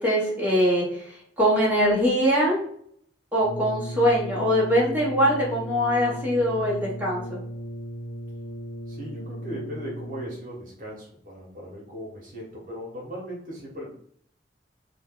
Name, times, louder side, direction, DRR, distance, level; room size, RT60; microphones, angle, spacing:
voice 1, 0.0-2.6 3.3-7.4, equal, 10° right, -7 dB, 1.0 m, -22 dB
Brass instrument, 3.4-10.5, equal, 85° left, 1.1 m, -36 dB
voice 2, 8.9-13.9, equal, 50° right, -3 dB, 1.1 m, -38 dB
2.7 x 2.2 x 3.6 m, 0.63 s
head